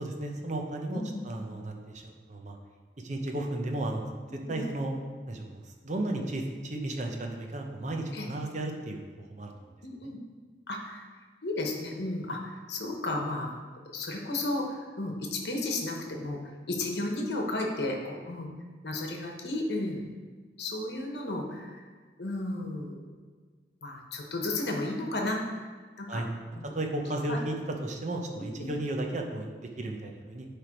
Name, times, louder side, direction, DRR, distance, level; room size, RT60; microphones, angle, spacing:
voice 1, 0.0-2.6 3.0-4.1 4.5-4.9 5.3-9.5 26.1-26.3 26.7-27.6 27.8-30.5, right 1 dB, 45° right, 2 dB, 0.8 m, -34 dB
voice 2, 0.9-1.2 4.3-4.6 8.1-8.3 9.8-10.2 10.7-11.1 11.4-13.5 13.9-16.4 16.7-18.5 18.8-20.0 20.6-21.8 22.2-23.1 23.8-25.7 26.0-26.2 26.5-26.7 27.3-27.4 28.4-28.7, left 2 dB, 65° left, 1 dB, 1.1 m, -33 dB
10.0 x 3.4 x 4.5 m, 1.5 s
head